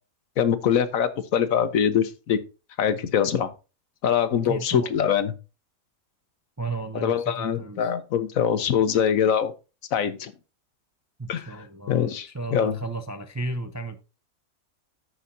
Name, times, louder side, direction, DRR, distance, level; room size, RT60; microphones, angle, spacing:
voice 1, 0.4-2.4 2.8-3.5 4.0-5.3 7.0-9.5 9.9-10.3 11.3-11.5 11.9-12.8, left 8 dB, 75° left, 1.3 m, -23 dB
voice 2, 4.3-4.9 6.6-7.9 11.2-14.0, right 3 dB, 20° right, 0.4 m, -34 dB
14.0 x 5.6 x 2.6 m
omnidirectional pair, 1.4 m